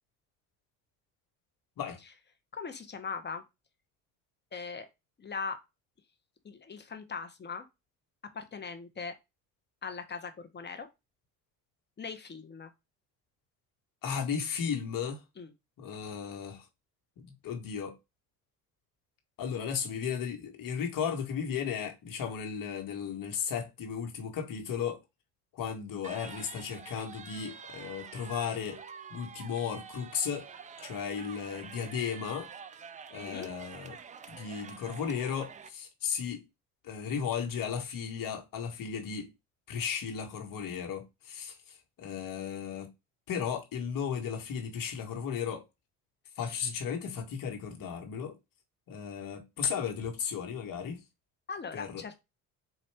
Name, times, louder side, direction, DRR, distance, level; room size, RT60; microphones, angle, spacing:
voice 1, 2.5-3.4 4.5-4.9 5.2-5.6 6.4-7.6 8.3-9.1 9.8-10.9 12.0-12.7 15.4-15.5 33.2-33.5 51.5-52.2, left 5 dB, 25° left, 1.0 m, -40 dB
voice 2, 14.0-15.2 15.8-16.7 17.2-18.0 19.4-25.0 25.5-28.8 29.1-30.5 30.8-32.5 33.1-34.0 34.3-36.4 36.8-39.3 39.7-42.9 43.3-45.6 46.4-48.4 48.9-51.0 51.7-52.0, left 7 dB, 50° left, 1.4 m, -35 dB
sound 1, 26.0-35.7, right 6 dB, 20° right, 0.4 m, -47 dB
4.1 x 2.6 x 3.4 m
supercardioid pair, 75°, 42 cm